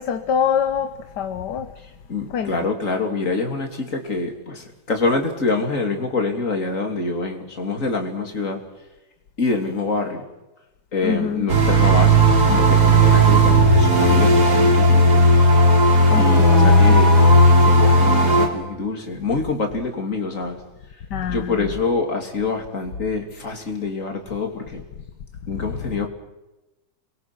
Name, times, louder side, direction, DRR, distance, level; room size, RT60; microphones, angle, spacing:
voice 1, 0.0-1.7 2.3-2.7 11.0-11.5 16.1-17.0 21.1-21.7 25.5-25.6, left 7 dB, 65° left, 10 dB, 1.6 m, -25 dB
voice 2, 2.1-8.6 9.4-10.2 10.9-12.2 12.4-15.3 16.1-17.2 17.6-20.6 21.3-24.8 25.5-26.1, left 3 dB, 45° left, 4 dB, 3.4 m, -25 dB
sound 1, 11.5-18.5, right 1 dB, 60° right, 4.2 m, -14 dB
28.5 x 22.5 x 6.2 m, 1.0 s
omnidirectional pair, 2.0 m